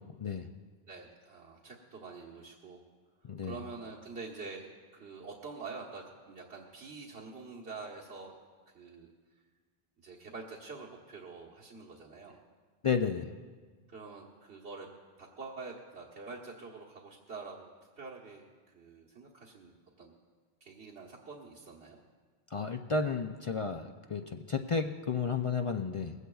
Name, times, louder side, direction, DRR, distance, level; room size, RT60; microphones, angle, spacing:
voice 1, 0.9-2.8 3.4-8.3 8.7-9.1 10.0-12.4 13.9-14.9 15.2-17.7 18.0-18.5 18.7-20.1 20.6-22.0, right 4 dB, 90° right, -6 dB, 1.6 m, -46 dB
voice 2, 12.8-13.2 22.5-26.1, left 5 dB, 50° left, 5 dB, 0.4 m, -32 dB
20.5 x 16.5 x 2.3 m, 1.5 s
omnidirectional pair, 1.1 m